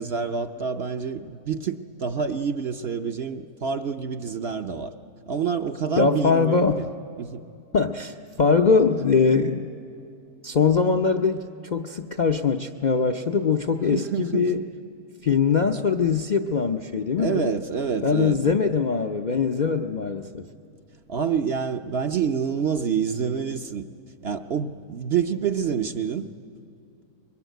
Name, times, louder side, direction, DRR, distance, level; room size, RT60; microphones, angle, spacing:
voice 1, 0.0-4.9 5.3-6.9 7.2-7.4 8.9-9.0 13.9-14.5 17.2-18.4 21.1-23.8 24.2-26.3, right 6 dB, 55° right, 6 dB, 0.8 m, -27 dB
voice 2, 6.0-6.8 7.7-9.7 10.4-14.6 15.2-17.5 18.0-20.4, left 5 dB, 50° left, 6 dB, 0.5 m, -22 dB
24.0 x 22.0 x 9.2 m, 2.7 s
omnidirectional pair, 1.6 m